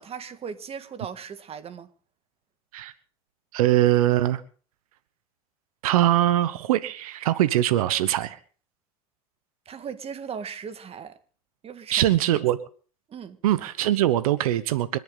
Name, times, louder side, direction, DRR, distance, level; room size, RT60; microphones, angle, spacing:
voice 1, 0.0-1.9 9.7-11.2 11.6-12.1 13.1-13.4, right 7 dB, 35° right, 1.8 m, -38 dB
voice 2, 3.5-4.4 5.8-8.4 11.9-12.6 13.4-15.0, right 13 dB, 85° right, 1.0 m, -22 dB
26.0 x 11.0 x 3.9 m
hypercardioid pair, 95°, 18 cm